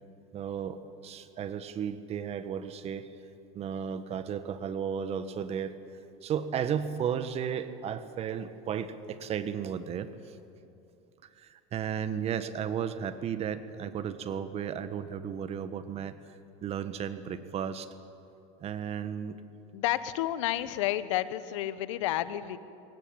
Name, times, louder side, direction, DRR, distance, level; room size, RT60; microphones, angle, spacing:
voice 1, 0.3-3.1 3.5-5.7 6.2-10.4 11.2-16.2 16.6-17.9 18.6-19.4, right 8 dB, 40° right, 11 dB, 1.5 m, -34 dB
voice 2, 19.7-22.6, left 13 dB, 85° left, 14 dB, 1.1 m, -30 dB
23.0 x 19.5 x 8.9 m, 2.6 s
supercardioid pair, 110°, 16 cm